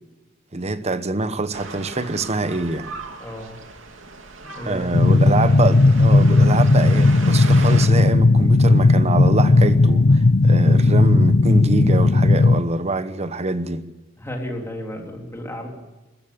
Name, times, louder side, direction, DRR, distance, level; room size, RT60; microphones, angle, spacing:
voice 1, 0.5-2.9 4.6-13.9, right 2 dB, 35° right, 1.0 m, -24 dB
sound 1, 1.5-7.9, right 3 dB, 75° right, 2.8 m, -37 dB
voice 2, 3.2-3.6 4.4-4.9 14.2-15.7, left 1 dB, 15° left, 3.6 m, -33 dB
sound 2, 4.9-12.6, left 2 dB, 55° left, 0.6 m, -15 dB
21.0 x 14.0 x 8.7 m
head